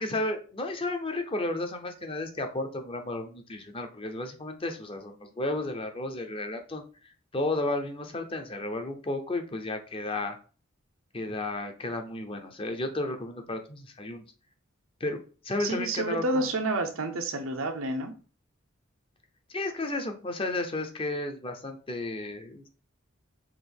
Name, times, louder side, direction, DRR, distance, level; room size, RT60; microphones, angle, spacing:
voice 1, 0.0-6.8 7.3-10.4 11.1-14.2 15.0-15.2 15.4-16.4 19.5-22.7, left 2 dB, 25° left, 5 dB, 0.6 m, -33 dB
voice 2, 15.6-18.2, right 2 dB, 85° right, 5 dB, 0.8 m, -29 dB
5.9 x 2.6 x 3.5 m, 0.37 s
head